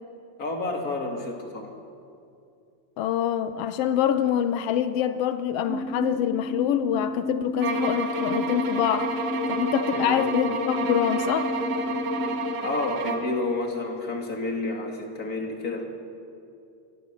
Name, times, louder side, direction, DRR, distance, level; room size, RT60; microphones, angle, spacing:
voice 1, 0.4-1.7 9.9-10.2 12.6-15.8, left 2 dB, 30° left, 2 dB, 2.9 m, -30 dB
voice 2, 3.0-9.1 9.5-11.5, left 10 dB, 85° left, 10 dB, 1.3 m, -25 dB
sound 1, 5.7-12.5, left 3 dB, ahead, 1.3 m, -31 dB
sound 2, 7.6-13.4, right 3 dB, 75° right, 3.4 m, -30 dB
28.5 x 21.5 x 7.8 m, 2.6 s
omnidirectional pair, 3.7 m